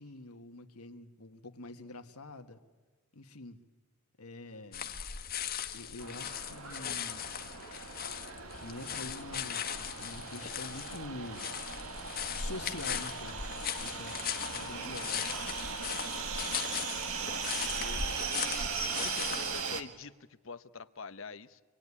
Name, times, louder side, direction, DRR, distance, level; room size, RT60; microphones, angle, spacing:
voice 1, 0.0-2.6 3.1-3.6 4.2-4.9 5.7-7.3 8.5-11.5 12.3-15.3, left 2 dB, 90° left, 7 dB, 1.7 m, -46 dB
sound 1, 4.7-19.6, left 8 dB, 40° left, 1.5 m, -39 dB
sound 2, 6.0-19.8, right 5 dB, 75° right, 1.8 m, -39 dB
voice 2, 14.6-14.9 17.7-21.6, left 4 dB, 60° left, 12 dB, 0.9 m, -46 dB
25.5 x 22.0 x 9.9 m, 1.3 s
head